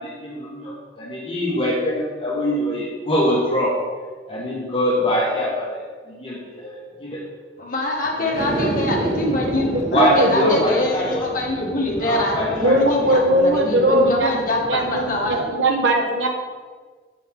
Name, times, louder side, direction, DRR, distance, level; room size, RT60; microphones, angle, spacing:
voice 1, 0.0-3.8 4.3-7.3 8.2-8.7 9.9-11.3 11.9-13.0, left 1 dB, 30° left, -4 dB, 1.5 m, -24 dB
voice 2, 7.6-15.4, left 1 dB, 50° left, -1 dB, 1.3 m, -25 dB
sound 1, 8.3-15.3, right 1 dB, 70° right, 2.3 m, -30 dB
voice 3, 9.6-10.6 12.6-14.4 14.6-16.3, right 1 dB, 85° right, 1 dB, 1.2 m, -19 dB
8.4 x 5.5 x 3.8 m, 1.5 s
head